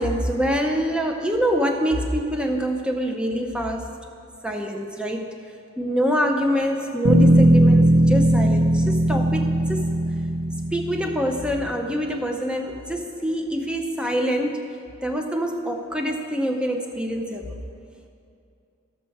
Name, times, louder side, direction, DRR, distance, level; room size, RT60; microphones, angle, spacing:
voice 1, 0.0-3.9 4.4-5.3 5.8-9.9 10.7-14.6 15.0-17.5, equal, 5° right, 2 dB, 0.6 m, -25 dB
Bass guitar, 7.0-11.4, right 1 dB, 75° right, 1.6 m, -18 dB
13.0 x 7.3 x 4.7 m, 2.5 s
head